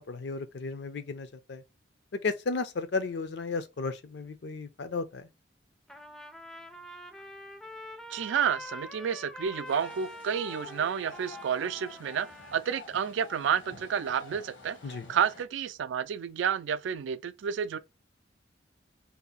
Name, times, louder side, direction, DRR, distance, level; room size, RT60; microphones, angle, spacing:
voice 1, 0.0-1.6 2.1-5.3 14.8-15.1, left 4 dB, 60° left, 0.5 m, -34 dB
Trumpet, 5.9-12.6, left 1 dB, ahead, 0.3 m, -45 dB
voice 2, 8.1-14.8 15.1-17.8, right 7 dB, 80° right, 0.3 m, -30 dB
sound 1, 9.7-15.4, left 1 dB, 80° left, 1.2 m, -49 dB
2.7 x 2.3 x 4.0 m
head